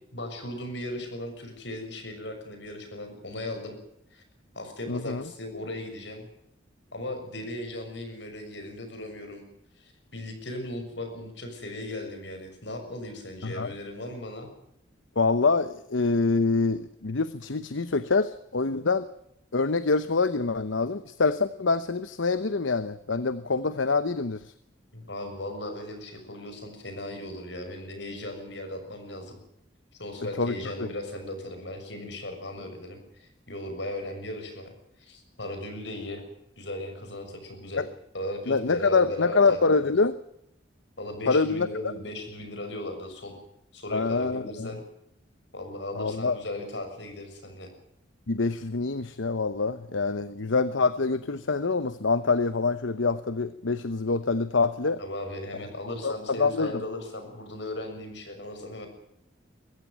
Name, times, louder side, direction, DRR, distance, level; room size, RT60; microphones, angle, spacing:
voice 1, 0.1-3.8 4.1-4.2 4.5-6.3 6.9-9.5 9.8-14.5 24.9-29.4 30.0-34.7 35.0-36.2 36.6-37.8 38.1-39.8 41.0-43.4 43.7-44.8 45.5-47.7 55.0-58.9, left 1 dB, 65° left, 5 dB, 6.7 m, -37 dB
voice 2, 4.9-5.2 13.4-13.7 15.2-19.1 19.5-24.5 30.4-30.9 37.8-37.9 38.5-40.2 41.3-41.7 43.9-44.7 45.9-46.4 48.3-55.0 56.0-56.8, left 4 dB, 85° left, 14 dB, 0.9 m, -25 dB
23.0 x 15.0 x 9.1 m, 0.78 s
head